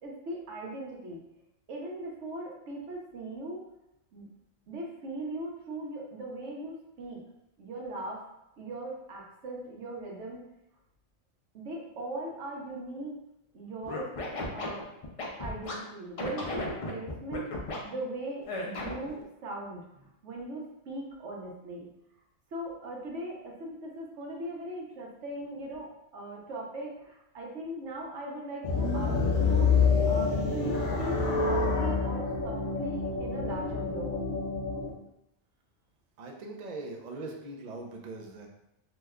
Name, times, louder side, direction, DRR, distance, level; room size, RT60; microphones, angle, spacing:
voice 1, 0.0-1.2 1.7-3.7 4.1-4.3 4.7-7.2 7.6-8.2 8.6-10.4 11.5-13.1 13.5-14.1 14.5-14.9 15.4-17.5 17.8-21.9 22.5-34.1, right 1 dB, 80° right, -2 dB, 1.1 m, -39 dB
Scratching (performance technique), 13.8-15.7 16.2-17.8 18.5-19.1, left 2 dB, 50° left, 0.4 m, -35 dB
sound 1, 28.6-34.9, left 4 dB, 80° left, 1.0 m, -27 dB
voice 2, 36.2-38.5, right 2 dB, 55° right, 1 dB, 0.4 m, -41 dB
2.9 x 2.1 x 3.5 m, 0.83 s
omnidirectional pair, 1.2 m